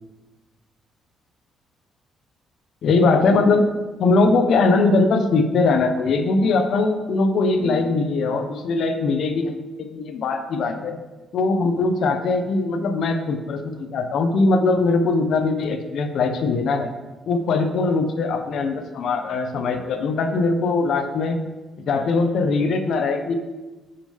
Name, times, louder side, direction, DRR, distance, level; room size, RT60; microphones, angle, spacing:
voice 1, 2.8-3.7 4.0-11.0 11.3-16.9 17.3-21.4 21.9-23.3, left 3 dB, 70° left, 7 dB, 1.0 m, -21 dB
11.0 x 7.1 x 3.5 m, 1.2 s
cardioid pair, 90°, 0 cm